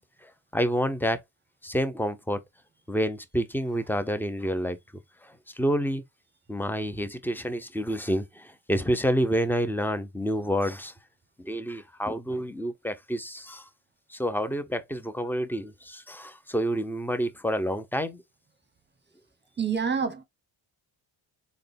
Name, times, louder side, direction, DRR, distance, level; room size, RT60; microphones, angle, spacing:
voice 1, 0.5-1.2 1.6-2.4 2.9-4.8 5.6-6.0 6.5-8.2 8.7-10.9 11.4-13.6 14.2-18.2, equal, 5° left, 0.6 m, -28 dB
voice 2, 19.6-20.2, right 6 dB, 20° right, 1.0 m, -27 dB
3.7 x 2.3 x 3.4 m
supercardioid pair, 55°, 49 cm